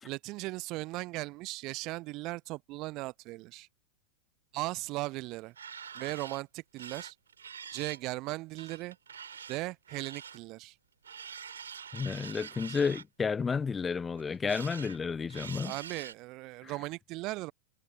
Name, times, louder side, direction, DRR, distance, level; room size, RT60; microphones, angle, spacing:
voice 1, 0.0-3.7 4.5-5.5 5.9-7.1 7.7-9.0 9.5-10.8 15.6-17.5, right 21 dB, 40° right, 0.7 m, -37 dB
sound 1, 5.3-6.4 6.8-8.1 8.6-10.4 11.0-13.0 14.2-15.0 15.3-16.1, right 7 dB, 70° right, 6.1 m, -45 dB
voice 2, 11.9-15.7 16.6-16.7, left 5 dB, 15° left, 0.5 m, -31 dB
figure-of-eight pair, 90°, 0 cm